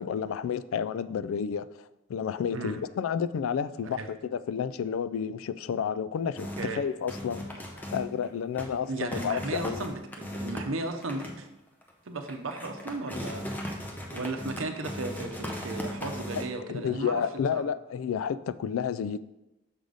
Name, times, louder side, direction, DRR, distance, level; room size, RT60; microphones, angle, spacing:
voice 1, 0.0-1.7 2.1-7.5 7.8-9.9 16.4-16.5 16.7-19.2, left 7 dB, 75° left, 0.3 m, -31 dB
sound 1, 6.4-6.8 7.1-8.3 8.5-8.8 9.1-11.4 11.8-11.9 12.3-16.5, equal, 10° left, 0.6 m, -37 dB
voice 2, 8.9-11.5 12.0-13.5 14.1-17.2 17.5-17.6, right 2 dB, 75° right, 0.7 m, -35 dB
6.4 x 4.0 x 4.9 m
head